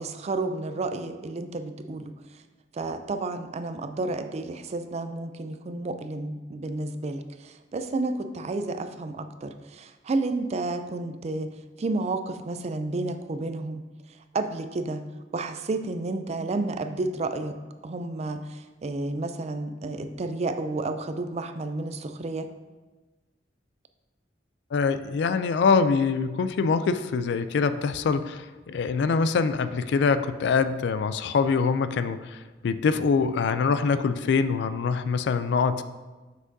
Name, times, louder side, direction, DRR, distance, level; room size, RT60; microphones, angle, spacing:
voice 1, 0.0-2.1 2.7-11.5 11.8-13.8 14.3-15.0 15.3-17.6 17.8-22.5, right 2 dB, 35° right, 9 dB, 0.4 m, -31 dB
voice 2, 24.7-35.8, left 5 dB, 65° left, 13 dB, 0.3 m, -24 dB
7.4 x 6.2 x 2.6 m, 1.2 s
head